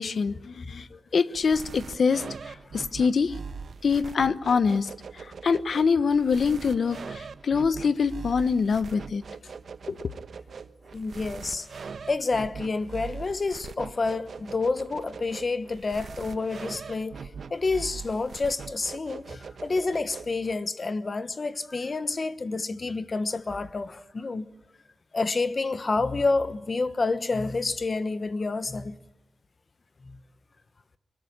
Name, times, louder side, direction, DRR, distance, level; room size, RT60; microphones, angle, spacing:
voice 1, 0.0-2.2 2.7-3.3 3.8-4.9 5.2-9.2 9.9-10.1, left 5 dB, 55° left, 0.9 m, -24 dB
sound 1, 1.3-20.5, right 5 dB, 55° right, 1.2 m, -42 dB
voice 2, 10.9-24.5 25.1-29.0 30.0-30.2, left 3 dB, 35° left, 1.2 m, -29 dB
23.5 x 21.0 x 9.8 m
wide cardioid pair, 155°, 0 cm